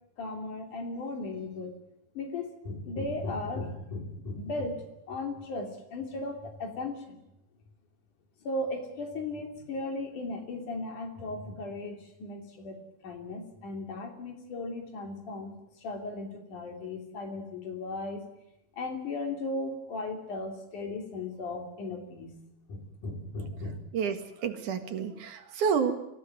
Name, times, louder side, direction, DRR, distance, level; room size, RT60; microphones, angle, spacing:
voice 1, 0.2-1.8 2.1-7.2 8.4-18.2 18.8-22.4 22.7-23.8, left 2 dB, 80° left, 3 dB, 4.5 m, -36 dB
voice 2, 23.9-26.0, right 6 dB, 75° right, 7 dB, 3.3 m, -29 dB
25.5 x 15.5 x 9.5 m, 0.84 s
omnidirectional pair, 3.5 m